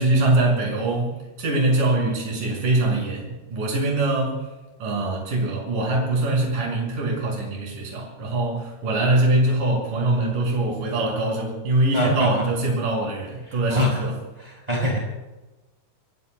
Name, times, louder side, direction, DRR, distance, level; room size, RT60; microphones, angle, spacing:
voice 1, 0.0-4.4 4.8-14.2, right 2 dB, 40° right, -1 dB, 7.1 m, -23 dB
voice 2, 11.9-12.3 13.7-13.9 14.7-15.0, left 1 dB, 10° right, -2 dB, 5.3 m, -22 dB
28.5 x 20.0 x 2.2 m, 1.1 s
omnidirectional pair, 5.9 m